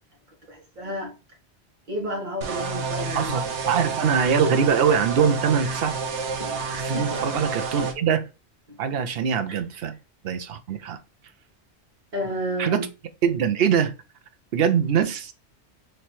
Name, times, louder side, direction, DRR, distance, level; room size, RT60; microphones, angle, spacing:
voice 1, 0.5-1.2 1.9-3.4 6.4-7.4 8.7-9.0 12.1-12.9, equal, 45° right, 1.6 m, -32 dB
sound 1, 2.4-7.9, right 4 dB, 85° right, 1.1 m, -29 dB
voice 2, 3.1-5.9 6.9-8.3 8.8-10.0 10.2-11.0 12.6-12.9 13.2-13.9 14.5-15.3, right 7 dB, 65° right, 0.8 m, -23 dB
3.3 x 3.0 x 4.3 m
omnidirectional pair, 1.1 m